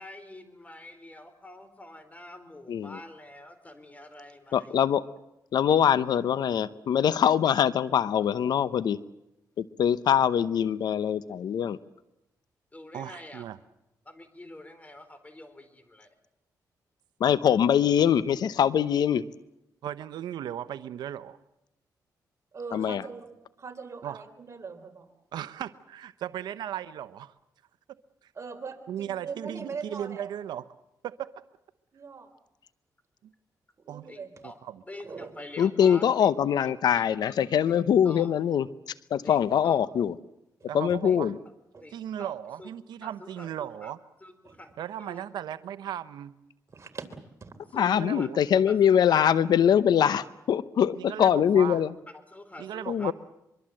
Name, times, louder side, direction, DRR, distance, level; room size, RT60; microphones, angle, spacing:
voice 1, 0.0-4.7 12.7-13.4 14.1-16.1 34.1-34.6 34.9-36.1 36.6-37.0 38.0-38.3 39.2-39.8 41.0-41.2 41.8-42.3 42.6-42.7 43.0-43.9 44.2-44.7 45.0-45.2 47.7-48.3 48.7-48.8 49.1-49.3 50.0-50.2 52.3-53.1, left 1 dB, 20° left, 10 dB, 4.2 m, -46 dB
voice 2, 2.7-3.0 4.5-5.0 5.5-9.0 9.6-11.8 17.2-19.2 22.7-23.0 35.6-38.7 39.1-40.1 40.7-41.4 47.7-51.9 52.9-53.1, left 9 dB, 70° left, 16 dB, 0.8 m, -23 dB
voice 3, 12.9-13.6 19.8-21.4 24.0-24.2 25.3-27.3 28.2-28.3 28.9-30.7 31.0-31.3 33.2-33.3 33.9-34.1 34.4-34.8 40.7-41.3 41.9-44.0 44.8-46.3 47.9-48.4 50.9-51.8 52.6-53.1, right 10 dB, 85° right, 13 dB, 0.8 m, -36 dB
voice 4, 22.5-23.3 23.6-25.1 28.3-30.3 31.9-32.3 33.8-34.3 35.0-35.3 41.7-41.8 44.4-44.6 46.7-47.1 47.4-47.5, right 5 dB, 40° right, 7 dB, 3.4 m, -41 dB
24.0 x 23.5 x 7.7 m, 0.89 s
cardioid pair, 80°, 7 cm